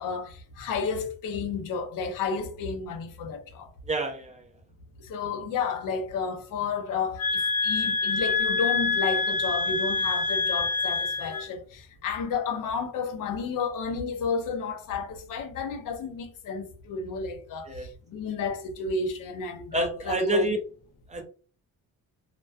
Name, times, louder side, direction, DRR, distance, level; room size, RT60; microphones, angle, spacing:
voice 1, 0.0-3.7 5.0-20.5, left 5 dB, 80° left, 0.6 m, -32 dB
voice 2, 3.9-4.5 17.7-17.9 19.7-20.6 21.1-21.2, right 2 dB, 25° right, 0.4 m, -28 dB
sound 1, 7.2-11.5, left 4 dB, 45° left, 0.9 m, -26 dB
2.3 x 2.2 x 2.3 m
cardioid pair, 125°, 32 cm